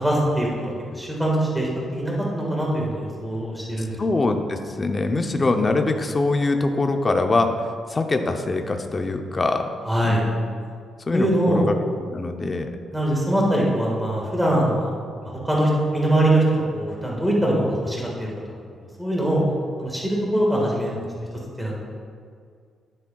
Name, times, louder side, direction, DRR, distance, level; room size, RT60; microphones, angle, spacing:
voice 1, 0.0-4.0 9.9-10.3 11.1-11.6 12.9-14.9 15.2-18.3 19.0-19.4 19.8-21.0 21.6-21.8, right 1 dB, 5° right, -3 dB, 1.6 m, -22 dB
voice 2, 4.0-7.5 7.9-9.7 10.0-10.3 11.1-11.8 12.1-12.7, left 3 dB, 20° left, 5 dB, 0.5 m, -23 dB
11.0 x 10.0 x 2.3 m, 2.1 s
cardioid pair, 170°, 0 cm